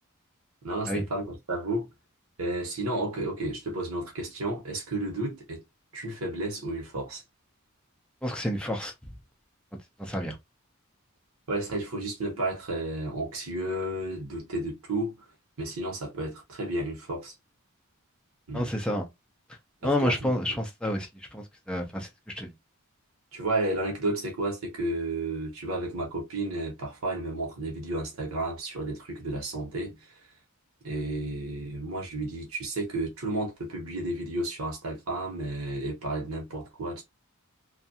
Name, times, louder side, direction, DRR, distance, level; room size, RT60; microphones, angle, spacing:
voice 1, 0.6-1.9 2.4-5.6 5.9-7.2 11.5-15.3 15.6-17.3 18.5-18.7 19.8-20.6 23.3-30.2 30.8-37.0, right 2 dB, 80° right, 0.9 m, -32 dB
voice 2, 8.2-8.9 10.0-10.4 18.5-19.1 19.8-22.1 22.3-22.5, left 1 dB, 5° left, 0.6 m, -29 dB
2.6 x 2.3 x 2.7 m
head